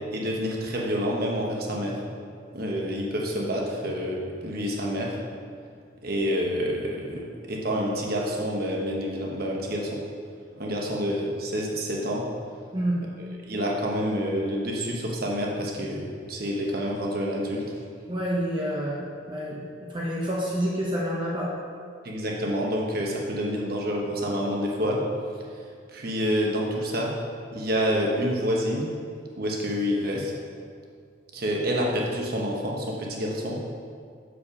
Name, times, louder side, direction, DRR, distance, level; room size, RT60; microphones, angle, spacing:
voice 1, 0.1-2.0 2.5-5.1 6.0-10.0 10.6-12.2 13.2-17.6 22.0-25.0 25.9-27.1 27.5-28.9 29.4-30.3 31.3-33.6, equal, 50° right, -2 dB, 1.1 m, -28 dB
voice 2, 12.7-13.0 18.1-21.5, equal, 25° right, -5 dB, 0.8 m, -28 dB
6.9 x 5.0 x 4.8 m, 2.2 s
head